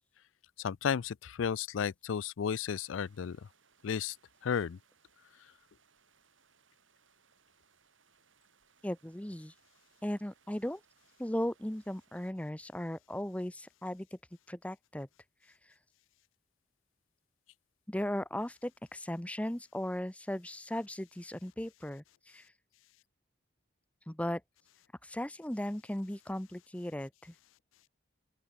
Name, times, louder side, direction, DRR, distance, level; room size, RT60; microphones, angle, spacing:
voice 1, 0.6-3.4 3.8-4.2 4.4-4.8, left 7 dB, 80° left, 0.4 m, -33 dB
sound 1, 2.6-12.3, right 6 dB, 85° right, 6.8 m, -69 dB
voice 2, 8.8-9.5 10.0-10.8 11.2-14.2 14.5-15.1 17.9-22.5 24.1-24.4 25.0-27.3, left 1 dB, 5° left, 0.7 m, -37 dB
open air
head